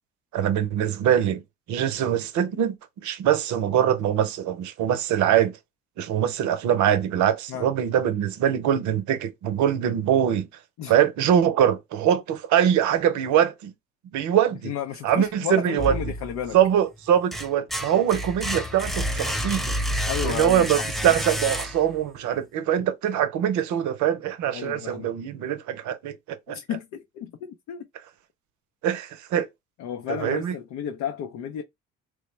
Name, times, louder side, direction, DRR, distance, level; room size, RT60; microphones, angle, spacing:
voice 1, 0.3-1.4 1.7-5.6 6.0-10.5 10.9-13.7 14.1-14.7 15.0-15.9 16.5-19.8 20.2-26.6 28.8-29.5 30.1-30.5, right 10 dB, 65° right, 0.6 m, -23 dB
voice 2, 14.6-16.6 20.1-20.7 24.5-25.1 26.5-27.9 29.8-31.6, left 9 dB, 60° left, 0.5 m, -32 dB
sound 1, 15.8-16.6 17.0-22.1, equal, ahead, 0.4 m, -29 dB
3.1 x 2.0 x 3.2 m
supercardioid pair, 70°, 32 cm